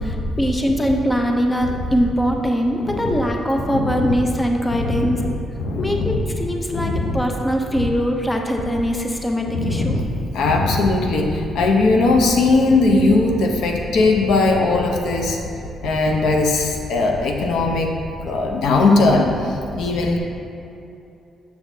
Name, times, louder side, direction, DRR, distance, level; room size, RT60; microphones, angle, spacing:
voice 1, 0.0-5.2 5.8-10.0, equal, 15° left, 2 dB, 0.6 m, -22 dB
voice 2, 2.8-3.1 3.6-4.1 4.8-5.2 5.6-6.2 6.7-7.2 9.5-10.0 10.3-15.4 15.8-17.9 18.2-20.2, left 3 dB, 80° left, 2 dB, 0.7 m, -19 dB
6.8 x 6.2 x 2.7 m, 2.7 s
cardioid pair, 90°, 0 cm